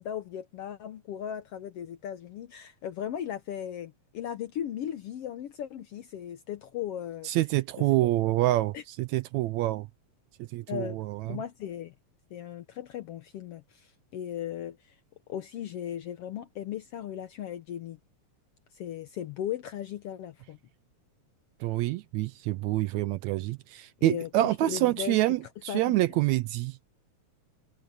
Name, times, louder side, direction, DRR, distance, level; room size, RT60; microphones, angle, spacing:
voice 1, 0.0-7.3 7.8-7.9 8.7-8.8 10.7-11.0 11.3-11.9 12.3-14.9 15.3-18.0 18.7-20.6 24.0-25.2 25.7-26.2, left 10 dB, 70° left, 1.5 m, -37 dB
voice 2, 7.2-9.9 10.4-11.4 21.6-26.8, right 16 dB, 80° right, 1.7 m, -27 dB
omnidirectional pair, 3.6 m